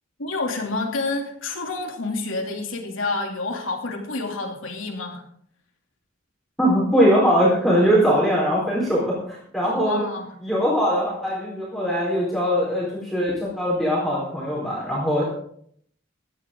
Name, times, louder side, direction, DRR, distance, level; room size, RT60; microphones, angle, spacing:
voice 1, 0.2-5.2 9.6-10.3, left 3 dB, 85° left, 1 dB, 2.9 m, -28 dB
voice 2, 6.6-10.0 10.4-15.2, equal, ahead, -6 dB, 4.3 m, -21 dB
16.5 x 12.0 x 3.8 m, 0.65 s
head